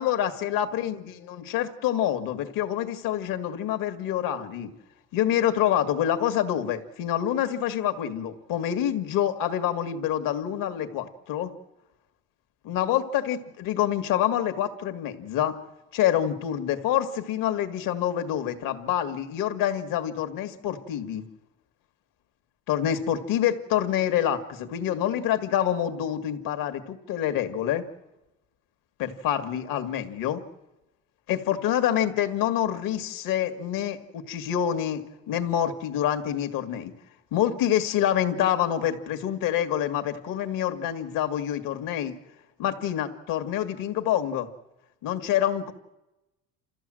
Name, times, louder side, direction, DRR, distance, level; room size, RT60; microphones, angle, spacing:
voice 1, 0.0-4.7 5.1-11.5 12.6-15.6 15.9-21.2 22.7-27.8 29.0-30.4 31.3-36.9 37.3-42.1 42.6-44.5 45.0-45.7, left 10 dB, 65° left, 7 dB, 2.0 m, -27 dB
29.0 x 14.5 x 7.7 m, 1.0 s
cardioid pair, 160°, 36 cm